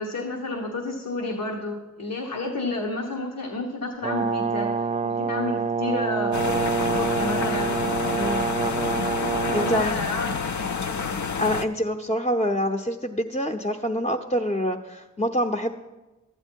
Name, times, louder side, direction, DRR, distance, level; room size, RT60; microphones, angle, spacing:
voice 1, 0.0-4.7 5.0-6.7 7.0-7.8 9.4-10.4, left 2 dB, 80° left, 0 dB, 1.2 m, -30 dB
Brass instrument, 4.0-9.8, right 5 dB, 25° right, 0.3 m, -26 dB
sound 1, 6.3-11.6, left 5 dB, 60° left, 0.6 m, -29 dB
voice 2, 9.5-9.9 11.4-15.7, equal, 20° left, 2 dB, 0.8 m, -26 dB
12.0 x 8.9 x 4.5 m, 1.1 s
cardioid pair, 45°, 33 cm